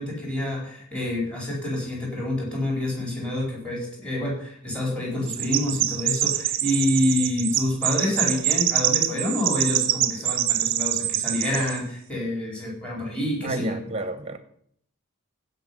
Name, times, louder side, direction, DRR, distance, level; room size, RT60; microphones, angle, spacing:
voice 1, 0.0-13.8, left 1 dB, 5° left, -3 dB, 4.2 m, -27 dB
Chirp tweet, 5.3-11.8, right 13 dB, 60° right, 0.7 m, -25 dB
voice 2, 13.4-14.4, right 2 dB, 30° right, 10 dB, 1.1 m, -30 dB
16.0 x 5.6 x 5.6 m, 0.65 s
head